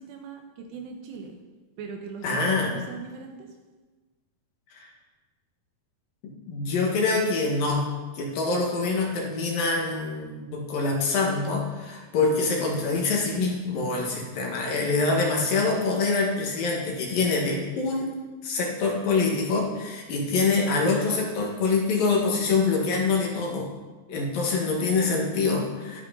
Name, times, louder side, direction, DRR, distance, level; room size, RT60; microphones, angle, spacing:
voice 1, 0.0-1.3 1.8-3.5, right 5 dB, 90° right, 3 dB, 3.6 m, -40 dB
voice 2, 2.2-2.7 4.7-4.9 6.5-7.9 8.2-18.1 18.4-23.7 24.1-26.0, left 3 dB, 65° left, -1 dB, 3.4 m, -25 dB
12.5 x 11.5 x 4.1 m, 1.3 s
omnidirectional pair, 4.7 m